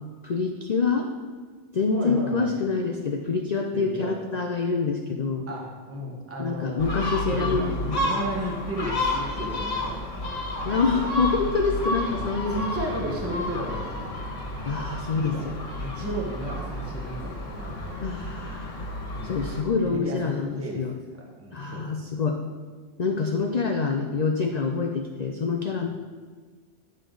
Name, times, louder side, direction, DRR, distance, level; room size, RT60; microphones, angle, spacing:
voice 1, 0.2-1.1 1.7-5.5 6.4-8.1 10.7-12.6 14.6-15.5 18.0-18.9 19.2-20.9 21.5-22.4 23.0-25.9, left 4 dB, 50° left, 4 dB, 0.5 m, -26 dB
voice 2, 1.9-2.5 3.7-4.1 5.5-10.3 10.7-10.8 12.0-14.1 15.1-18.0 19.1-19.4 19.8-22.0, equal, 10° right, -1 dB, 1.1 m, -34 dB
Gull seagull, 6.8-19.6, left 1 dB, 80° left, 1.7 m, -31 dB
10.5 x 6.5 x 3.9 m, 1.5 s
omnidirectional pair, 1.3 m